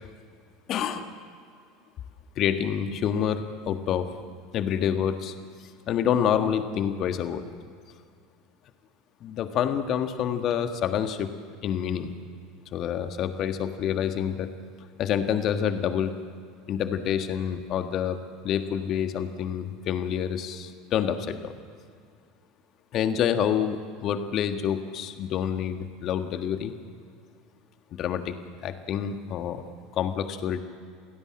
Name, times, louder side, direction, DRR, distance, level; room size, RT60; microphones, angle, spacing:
voice 1, 0.7-1.1 2.4-4.1 4.5-5.3 5.9-7.4 9.2-11.3 11.6-12.1 12.7-14.5 15.0-16.1 16.7-18.2 18.4-21.5 22.9-26.7 27.9-28.4 28.6-29.6 29.9-30.6, left 9 dB, 45° left, 8 dB, 1.6 m, -27 dB
28.5 x 17.0 x 7.6 m, 2.2 s
figure-of-eight pair, 75°, 0 cm